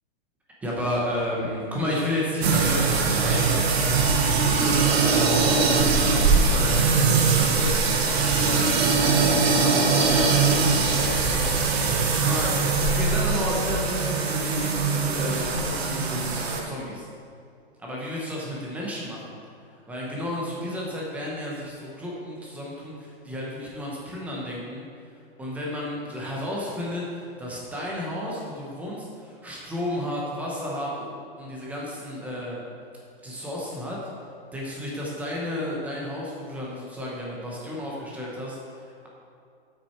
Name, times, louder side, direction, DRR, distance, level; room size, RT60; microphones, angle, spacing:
voice 1, 0.6-17.1 17.8-19.4 19.9-24.9 25.4-31.1 31.4-32.6 33.2-34.0 34.5-39.1, left 1 dB, 5° right, -4 dB, 0.9 m, -32 dB
sound 1, 2.4-16.6, right 4 dB, 80° right, 1.3 m, -22 dB
7.9 x 6.1 x 4.4 m, 2.4 s
supercardioid pair, 170°, 31 cm